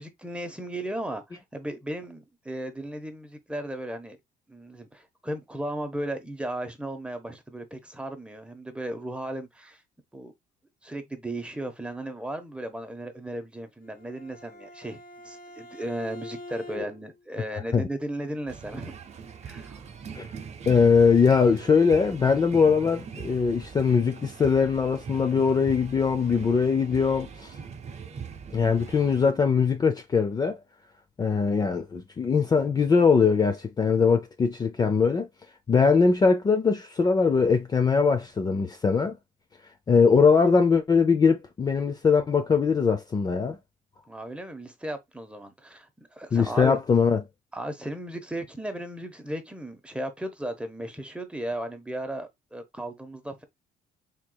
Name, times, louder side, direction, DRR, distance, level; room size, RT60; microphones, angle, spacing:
voice 1, 0.0-4.2 4.5-9.8 10.1-10.3 10.8-15.0 15.2-19.0 19.4-19.8 44.1-46.8 47.5-53.4, right 1 dB, 5° right, 0.9 m, -35 dB
Bowed string instrument, 13.8-17.2, left 1 dB, 65° left, 2.1 m, -44 dB
sound 1, 18.5-29.3, right 6 dB, 40° right, 0.7 m, -41 dB
voice 2, 20.7-27.5 28.5-30.6 31.2-35.3 35.7-39.2 39.9-43.6 46.3-47.2, left 5 dB, 25° left, 0.5 m, -21 dB
4.6 x 3.6 x 2.3 m
cardioid pair, 110°, 17 cm